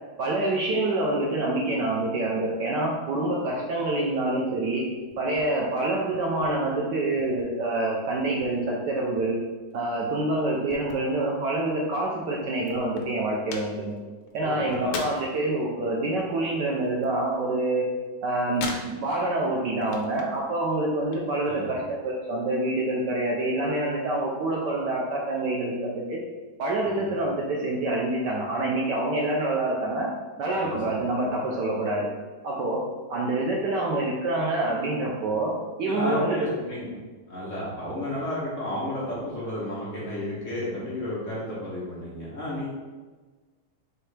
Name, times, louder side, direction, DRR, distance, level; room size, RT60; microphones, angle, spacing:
voice 1, 0.2-4.9 5.2-9.4 9.7-14.0 14.3-17.8 18.2-26.2 26.6-30.1 30.4-32.1 32.4-32.8 33.1-36.4, right 2 dB, 70° right, -2 dB, 1.1 m, -26 dB
sound 1, 5.1-5.5 5.8-7.5 7.9-8.8 9.2-11.7 12.0-12.1 12.3-15.4 15.8-17.7 18.0-19.3 19.7-20.5 20.8-21.6, left 4 dB, 85° left, 1.4 m, -40 dB
voice 2, 14.4-15.0 21.5-21.7 26.8-27.1 30.6-30.8 35.9-36.9 37.3-42.7, left 1 dB, 45° left, -8 dB, 1.2 m, -32 dB
4.6 x 3.1 x 3.3 m, 1.3 s
omnidirectional pair, 2.2 m